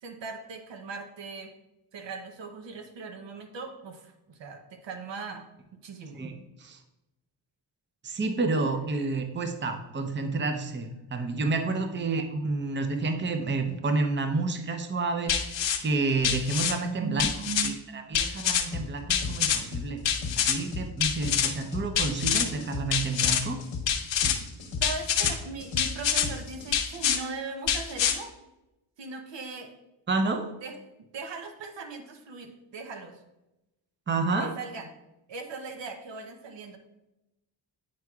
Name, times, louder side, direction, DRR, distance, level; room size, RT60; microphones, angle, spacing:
voice 1, 0.0-1.5 1.9-5.4 5.8-6.2 17.0-17.8 24.4-24.5 24.8-28.3 29.0-29.7 30.6-30.7 31.1-33.2 34.4-34.9 35.3-36.8, right 4 dB, 70° right, 6 dB, 0.9 m, -39 dB
voice 2, 6.2-6.8 8.0-17.3 17.6-20.0 20.4-23.6 30.1-30.5 34.1-34.5, right 3 dB, 25° right, 6 dB, 0.7 m, -29 dB
sound 1, 15.3-15.8 16.2-16.7 17.2-17.7 18.1-18.6 19.1-19.6 20.0-20.5 21.0-21.5 22.0-22.5 22.9-23.4 23.9-24.4 24.8-25.3 25.8-26.3 26.7-27.2 27.7-28.1, left 8 dB, 70° left, 0.8 m, -25 dB
sound 2, 18.7-18.9 19.2-27.0, left 4 dB, 90° left, 1.1 m, -36 dB
9.4 x 4.6 x 2.4 m, 0.96 s
cardioid pair, 75°, 46 cm